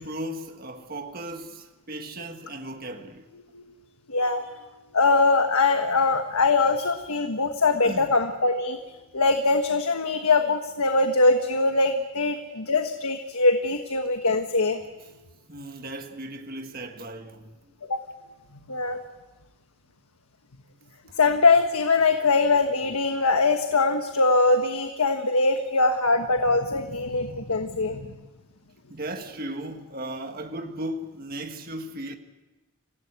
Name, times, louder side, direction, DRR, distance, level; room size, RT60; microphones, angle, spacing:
voice 1, 0.0-3.2 7.7-8.2 15.5-17.7 21.1-21.2 28.9-32.2, right 1 dB, 40° right, 1.7 m, -36 dB
voice 2, 4.1-4.4 4.9-8.8 9.1-14.8 17.9-18.0 18.7-19.0 21.2-28.1, left 3 dB, 80° left, 1.4 m, -22 dB
27.0 x 17.0 x 8.1 m
head